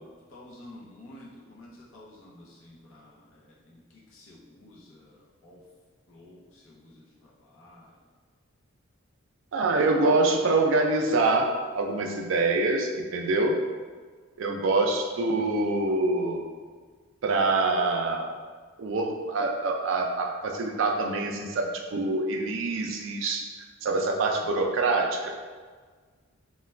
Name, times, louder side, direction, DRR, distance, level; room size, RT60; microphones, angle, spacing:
voice 1, 0.3-3.4 3.7-5.6 6.1-7.9, left 1 dB, 70° left, -5 dB, 0.6 m, -51 dB
voice 2, 9.5-13.5 14.4-16.4 17.2-18.3 18.8-23.4 23.8-25.3, right 3 dB, 65° right, 2 dB, 0.3 m, -25 dB
2.3 x 2.2 x 3.1 m, 1.5 s
head